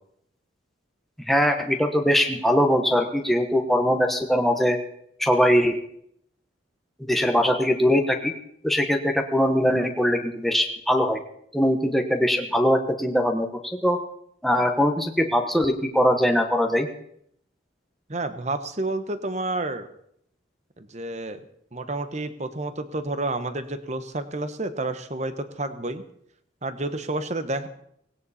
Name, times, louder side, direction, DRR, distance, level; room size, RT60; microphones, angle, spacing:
voice 1, 1.3-4.8 5.2-5.8 7.1-8.3 8.6-11.2 11.5-13.5 13.8-14.0 14.4-16.9, equal, ahead, 3 dB, 1.1 m, -21 dB
voice 2, 18.1-19.9 20.8-21.4 21.7-26.0 26.6-27.7, right 2 dB, 35° right, 10 dB, 1.1 m, -30 dB
18.5 x 17.0 x 4.3 m, 0.70 s
head